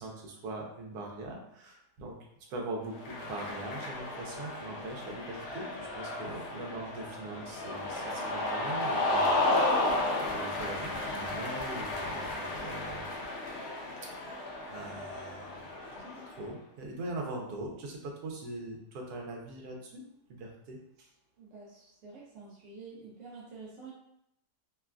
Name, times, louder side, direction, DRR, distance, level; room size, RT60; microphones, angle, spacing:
voice 1, 0.0-2.1 2.5-13.1 14.0-20.0 20.3-21.1, right 2 dB, 80° right, 0 dB, 1.1 m, -42 dB
Cheering, 2.9-16.4, left 2 dB, 70° left, 0.6 m, -33 dB
voice 2, 21.4-23.9, right 4 dB, 65° right, -5 dB, 0.8 m, -48 dB
3.0 x 2.2 x 2.3 m, 0.77 s
omnidirectional pair, 1.7 m